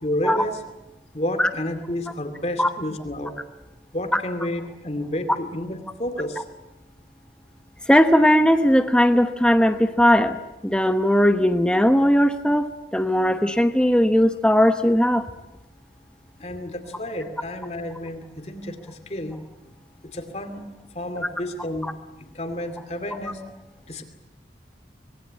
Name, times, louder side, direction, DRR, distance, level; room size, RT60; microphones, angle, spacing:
voice 1, 0.0-0.6 1.1-3.3 3.9-6.4 16.4-19.4 20.1-20.7 20.9-21.9 22.3-23.4 23.9-24.0, left 1 dB, 35° left, 8 dB, 2.5 m, -30 dB
voice 2, 7.9-15.3, equal, 5° left, 8 dB, 1.0 m, -18 dB
25.0 x 21.0 x 8.7 m, 1.0 s
head